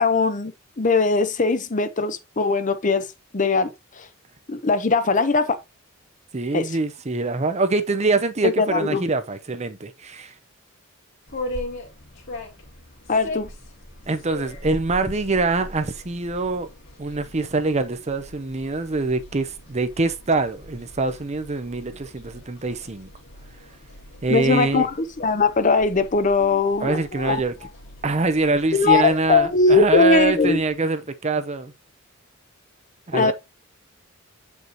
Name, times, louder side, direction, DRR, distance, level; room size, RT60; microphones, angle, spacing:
voice 1, 0.0-4.1 4.5-5.6 6.5-6.8 8.4-9.0 13.1-13.5 24.3-27.4 28.7-30.6 33.1-33.3, left 4 dB, 35° left, 0.8 m, -20 dB
voice 2, 6.3-10.3 14.1-16.7 17.0-23.1 24.2-24.9 26.8-27.5 28.0-31.7 33.1-33.3, right 3 dB, 30° right, 0.7 m, -24 dB
sound 1, 11.2-30.7, left 1 dB, 60° left, 2.4 m, -40 dB
7.9 x 5.2 x 2.8 m
head